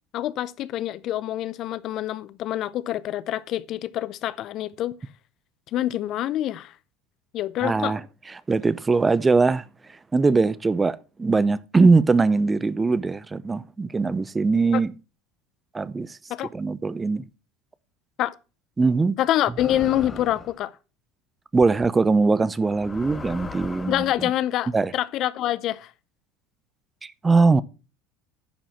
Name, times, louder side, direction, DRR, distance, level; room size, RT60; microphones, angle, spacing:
voice 1, 0.1-5.0 5.7-6.7 7.3-8.0 14.7-14.8 16.3-16.5 18.2-18.3 19.2-20.7 23.9-25.9, left 12 dB, 55° left, 0.6 m, -26 dB
voice 2, 7.6-8.0 8.5-9.6 10.1-14.9 15.7-16.2 16.5-17.2 18.8-19.2 21.5-24.0 24.7-24.9 27.0-27.6, right 4 dB, 20° right, 0.5 m, -21 dB
sound 1, 19.6-20.6 21.6-21.9 22.6-24.2, left 4 dB, 25° left, 0.8 m, -38 dB
10.5 x 4.9 x 5.6 m
hypercardioid pair, 90°, 0 cm